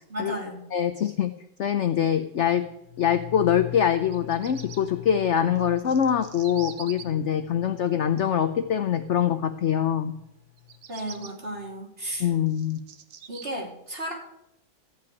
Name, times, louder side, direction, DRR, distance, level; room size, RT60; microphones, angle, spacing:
voice 1, 0.1-0.7 10.9-12.3 13.3-14.1, right 1 dB, 30° right, -1 dB, 3.1 m, -34 dB
voice 2, 0.7-1.3 1.6-2.7 3.0-10.1 12.2-12.8, left 9 dB, 70° left, 10 dB, 0.7 m, -24 dB
sound 1, 2.3-11.8 12.1-12.2, left 13 dB, 35° left, 2.2 m, -43 dB
Bird vocalization bird call bird song, 4.1-4.8 5.6-7.0 10.6-11.3 12.0-13.5, right 8 dB, 75° right, 1.6 m, -44 dB
14.5 x 5.7 x 9.2 m, 0.80 s
omnidirectional pair, 2.0 m